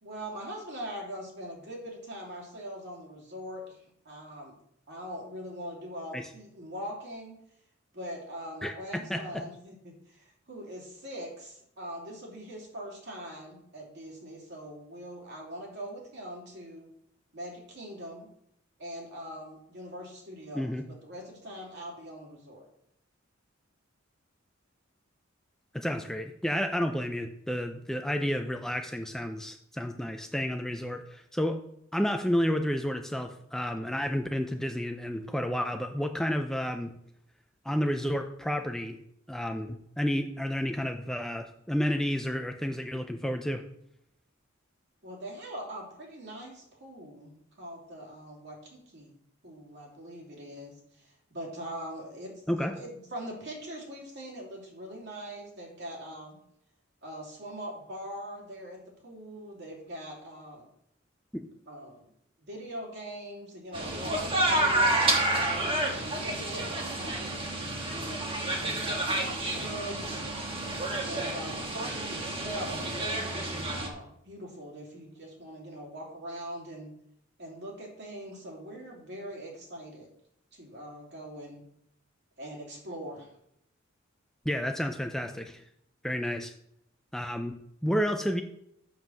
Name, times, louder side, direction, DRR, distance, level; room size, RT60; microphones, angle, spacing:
voice 1, 0.0-4.5 4.9-7.4 7.9-16.9 17.3-18.3 18.8-22.7 45.0-49.1 49.4-56.4 57.0-60.7 61.7-62.1 62.5-68.0 68.6-70.2 71.0-76.9 77.4-80.1 80.5-81.6 82.4-83.3, equal, 55° right, -1 dB, 2.8 m, -42 dB
voice 2, 8.6-9.4 20.5-20.9 25.7-31.6 31.9-36.9 37.6-39.0 39.3-43.6 52.5-52.7 61.3-61.4 84.5-85.6 86.0-86.5 87.1-88.4, equal, ahead, 5 dB, 0.4 m, -31 dB
sound 1, 63.7-73.9, right 1 dB, 25° right, 1.3 m, -29 dB
7.2 x 5.7 x 6.3 m, 0.75 s
head